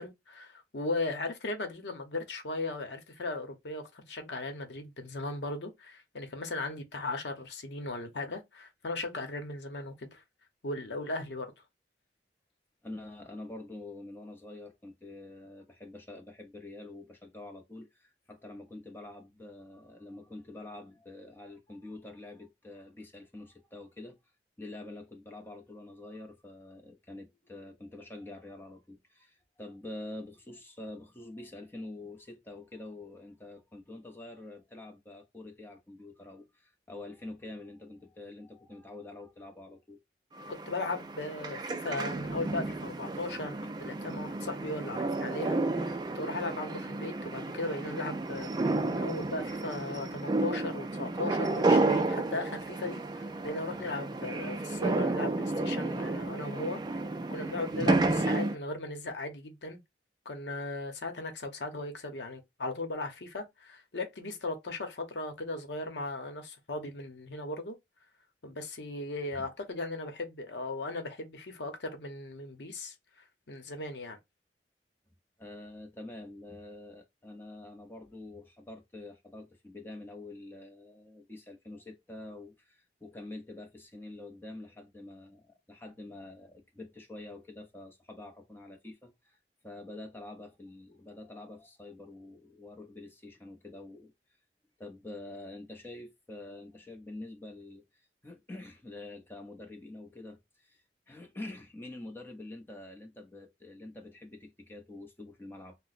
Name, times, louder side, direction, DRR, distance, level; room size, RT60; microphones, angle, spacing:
voice 1, 0.0-10.2 10.6-11.5 40.5-57.0 57.3-59.8 60.2-67.8 68.4-72.9 73.5-74.2, left 2 dB, 80° left, 0.8 m, -37 dB
voice 2, 12.8-24.2 24.6-40.0 69.3-69.5 75.4-89.4 89.6-94.1 94.8-105.8, left 2 dB, 10° left, 0.7 m, -46 dB
sound 1, 40.4-58.6, right 2 dB, 25° right, 0.3 m, -31 dB
2.9 x 2.1 x 4.0 m
head